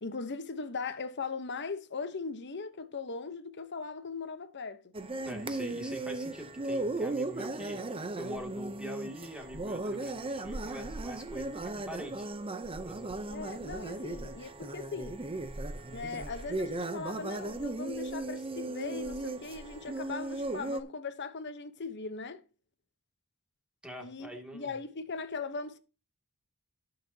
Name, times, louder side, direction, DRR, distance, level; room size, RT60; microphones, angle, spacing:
voice 1, 0.0-4.9 13.3-15.2 15.9-22.4 24.0-25.8, left 4 dB, 55° left, 1.0 m, -39 dB
sound 1, 4.9-20.8, right 2 dB, 25° right, 0.7 m, -37 dB
voice 2, 5.2-12.3 12.8-13.1 23.8-24.7, equal, 5° right, 2.5 m, -44 dB
18.5 x 6.8 x 2.8 m
head